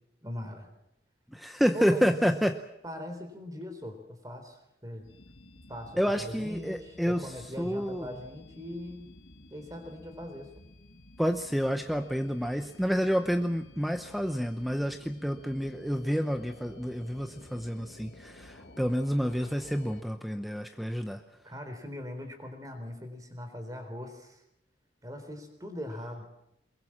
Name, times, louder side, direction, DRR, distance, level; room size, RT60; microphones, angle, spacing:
voice 1, 0.2-0.7 1.7-2.1 2.8-5.1 5.7-9.1 9.5-10.5 21.4-24.4 25.0-26.3, left 1 dB, 20° right, 7 dB, 3.8 m, -41 dB
voice 2, 1.3-2.6 6.0-7.3 7.6-8.1 11.2-21.2, equal, ahead, 7 dB, 0.8 m, -29 dB
sound 1, 5.0-20.0, left 1 dB, 90° left, 2.3 m, -53 dB
22.5 x 22.5 x 7.4 m, 0.83 s
head